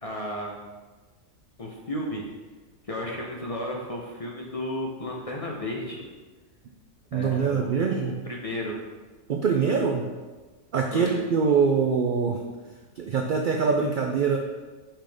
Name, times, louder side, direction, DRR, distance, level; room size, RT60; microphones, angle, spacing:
voice 1, 0.0-0.6 1.6-2.2 2.9-6.1 7.1-8.8 10.9-11.2, left 1 dB, 35° left, -2 dB, 0.6 m, -33 dB
voice 2, 7.1-8.2 9.3-10.1 10.7-12.4 13.0-14.4, right 5 dB, 80° right, 2 dB, 0.4 m, -24 dB
5.8 x 5.2 x 3.4 m, 1.3 s
omnidirectional pair, 1.4 m